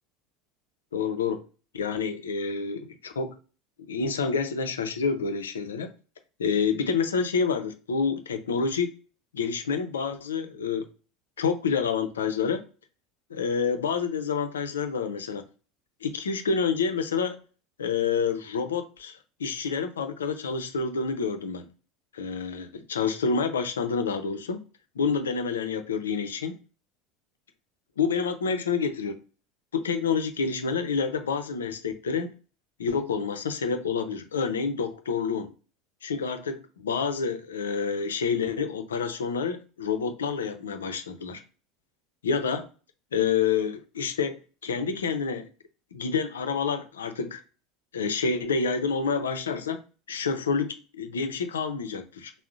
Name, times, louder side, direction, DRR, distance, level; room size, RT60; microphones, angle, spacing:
voice 1, 0.9-1.4 1.7-3.4 3.9-5.9 6.4-8.9 9.3-10.9 11.4-12.6 13.3-15.4 16.0-17.4 17.8-21.7 22.1-24.6 25.0-26.5 28.0-29.2 29.7-32.3 32.8-35.5 36.0-41.4 42.2-42.7 43.1-45.5 45.9-47.4 47.9-49.8 50.1-52.3, left 5 dB, 85° left, 0.5 m, -28 dB
3.7 x 2.0 x 2.4 m
hypercardioid pair, 80°, 0 cm